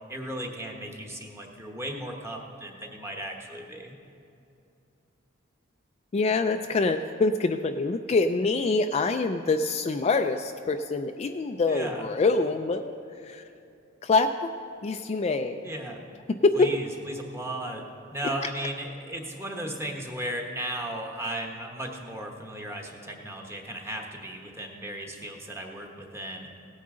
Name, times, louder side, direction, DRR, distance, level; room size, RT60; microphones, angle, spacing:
voice 1, 0.1-3.9 11.7-12.1 15.6-16.0 16.5-17.8 18.1-26.5, right 1 dB, 15° right, 1 dB, 1.1 m, -36 dB
voice 2, 6.1-12.9 13.2-13.4 14.0-14.5 14.8-15.6 16.4-16.7, left 3 dB, 30° left, 6 dB, 0.3 m, -25 dB
17.5 x 9.4 x 3.7 m, 2.7 s
head